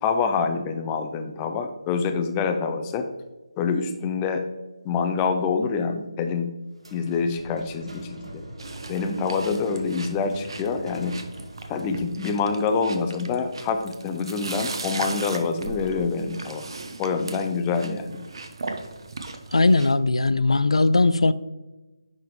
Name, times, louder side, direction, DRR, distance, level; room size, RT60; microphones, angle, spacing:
voice 1, 0.0-3.1 3.6-4.5 4.8-6.5 6.9-8.4 8.9-11.2 11.7-16.7 17.0-18.2, left 5 dB, 15° left, 6 dB, 0.4 m, -26 dB
sound 1, 6.7-12.2, right 1 dB, 85° right, 1.8 m, -42 dB
sound 2, 8.6-19.9, right 3 dB, 55° right, 0.8 m, -38 dB
voice 2, 19.5-21.3, left 3 dB, 90° left, 15 dB, 0.3 m, -19 dB
10.5 x 3.5 x 3.1 m, 1.1 s
figure-of-eight pair, 160°, 3 cm